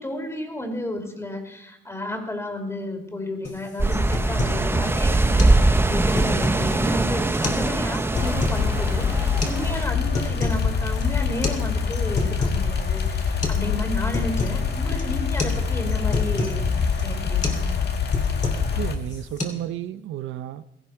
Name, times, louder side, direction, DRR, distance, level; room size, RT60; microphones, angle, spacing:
voice 1, 0.0-17.6, left 1 dB, 15° left, 3.1 m, -32 dB
sound 1, 3.4-3.6 3.9-4.6 5.0-5.1 5.4-5.6 5.9-6.7 7.3-7.7 7.9-8.6 9.4-9.6 9.9-10.7 10.9-11.0 11.4-11.6 11.9-12.7 13.0-13.1 13.4-13.6 13.9-14.6 15.0-15.1 15.4-15.6 15.9-16.6 17.0-17.1 17.4-17.7 17.9-18.7 19.1-19.4, left 3 dB, 35° left, 2.9 m, -29 dB
sound 2, 3.8-9.9, right 2 dB, 10° right, 0.7 m, -22 dB
sound 3, 8.1-18.9, left 6 dB, 55° left, 1.8 m, -25 dB
voice 2, 18.7-20.6, right 12 dB, 80° right, 0.6 m, -32 dB
17.0 x 14.5 x 4.5 m
cardioid pair, 90°, 20 cm